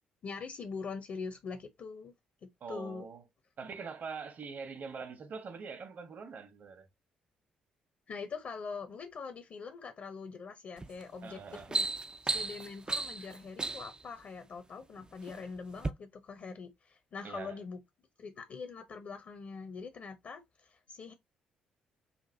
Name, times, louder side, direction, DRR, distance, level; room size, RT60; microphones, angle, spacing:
voice 1, 0.2-2.1 2.4-3.1 8.1-11.9 12.2-17.8 18.2-21.1, left 5 dB, 50° left, 0.8 m, -43 dB
voice 2, 2.6-3.2 3.6-6.9 11.2-11.7 17.2-17.6, right 5 dB, 50° right, 1.1 m, -43 dB
sound 1, 10.8-11.0 11.4-14.0 14.8-15.4 15.8-15.9, right 3 dB, 20° right, 0.4 m, -34 dB
5.8 x 2.5 x 2.7 m
figure-of-eight pair, 45°, 4 cm